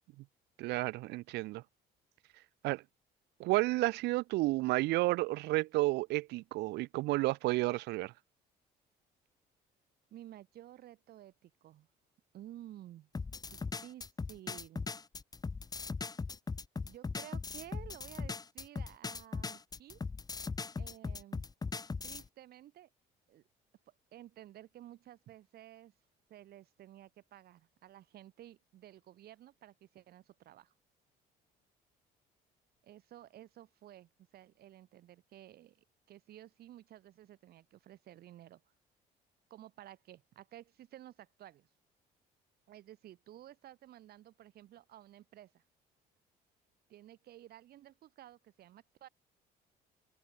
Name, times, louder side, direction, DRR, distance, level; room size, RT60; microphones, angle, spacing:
voice 1, 0.6-1.6 2.6-2.8 3.4-8.1, right 20 dB, 85° right, 1.1 m, -31 dB
voice 2, 10.1-11.9 12.3-13.1 13.5-14.9 16.8-20.0 20.8-21.5 22.0-22.9 23.3-23.4 23.9-25.9 26.3-30.7 32.8-38.6 39.5-41.7 42.7-45.6 46.9-49.1, right 13 dB, 65° right, 7.8 m, -54 dB
sound 1, 13.1-22.3, left 4 dB, 20° left, 1.8 m, -39 dB
cardioid pair, 110°, 17 cm